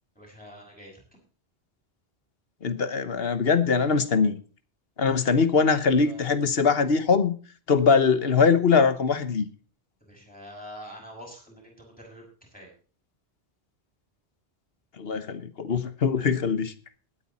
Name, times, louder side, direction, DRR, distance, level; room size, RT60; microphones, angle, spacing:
voice 1, 0.1-1.0 5.1-6.2 10.0-12.2 12.5-12.7, equal, 5° left, -2 dB, 6.7 m, -46 dB
voice 2, 2.6-4.3 5.0-7.4 7.7-9.5 15.0-16.7, left 5 dB, 60° left, 12 dB, 1.3 m, -22 dB
19.0 x 8.8 x 4.2 m, 0.38 s
omnidirectional pair, 1.1 m